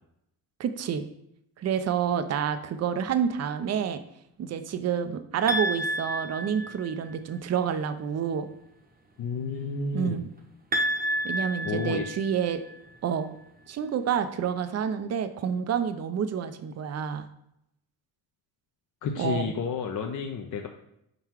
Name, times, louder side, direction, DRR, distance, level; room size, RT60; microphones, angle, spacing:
voice 1, 0.6-1.1 1.6-4.0 4.4-8.5 9.9-10.3 11.2-12.6 13.0-13.3 13.7-17.3 19.2-19.5, right 7 dB, 35° right, 10 dB, 0.5 m, -28 dB
sound 1, 5.5-7.1 10.7-12.7, equal, 20° right, 0.8 m, -30 dB
voice 2, 9.2-10.2 11.6-12.0 19.0-20.7, left 5 dB, 45° left, 3 dB, 0.6 m, -31 dB
4.4 x 3.9 x 2.9 m, 0.78 s
supercardioid pair, 60°, 45 cm